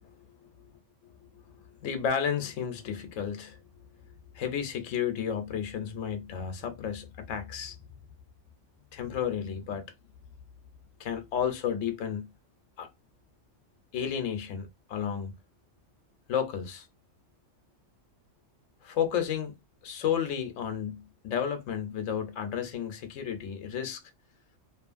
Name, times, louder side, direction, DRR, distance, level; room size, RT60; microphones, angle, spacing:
voice 1, 1.8-3.6 4.3-7.8 8.9-9.8 11.0-12.3 12.8-12.9 13.9-15.3 16.3-16.9 18.8-19.5 19.8-24.0, left 8 dB, 80° left, 1.0 m, -32 dB
2.7 x 2.4 x 2.5 m
omnidirectional pair, 1.3 m